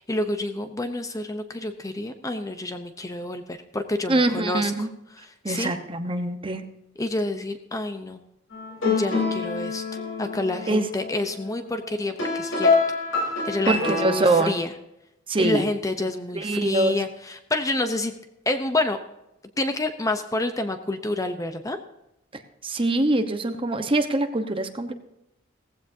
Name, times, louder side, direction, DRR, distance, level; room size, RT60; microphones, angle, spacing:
voice 1, 0.0-4.7 5.5-5.7 7.0-8.2 8.9-9.8 10.2-12.7 13.2-14.7 15.4-18.1 18.5-19.0 19.6-21.8, left 2 dB, 15° left, 8 dB, 0.7 m, -28 dB
voice 2, 4.1-4.9 5.4-6.6 10.7-10.9 13.7-14.6 15.3-15.6 16.3-17.0 22.6-24.9, right 2 dB, 25° right, 7 dB, 1.1 m, -23 dB
sound 1, 8.5-14.5, left 3 dB, 75° left, 4.1 m, -26 dB
17.5 x 15.5 x 2.8 m, 0.87 s
head